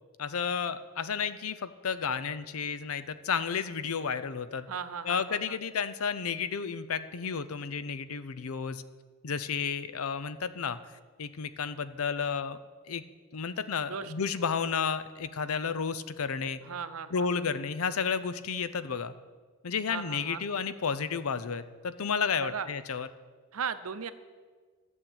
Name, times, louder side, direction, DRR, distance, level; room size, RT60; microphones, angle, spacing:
voice 1, 0.2-4.7 5.0-8.8 9.2-10.8 11.2-12.6 12.9-13.0 13.3-16.6 17.1-19.1 19.6-23.1, left 6 dB, 90° left, 14 dB, 0.6 m, -32 dB
voice 2, 4.7-5.6 13.9-14.1 16.6-17.3 19.9-20.4 22.4-22.7 23.5-24.1, right 6 dB, 85° right, 12 dB, 0.7 m, -37 dB
12.0 x 6.4 x 8.8 m, 1.5 s
head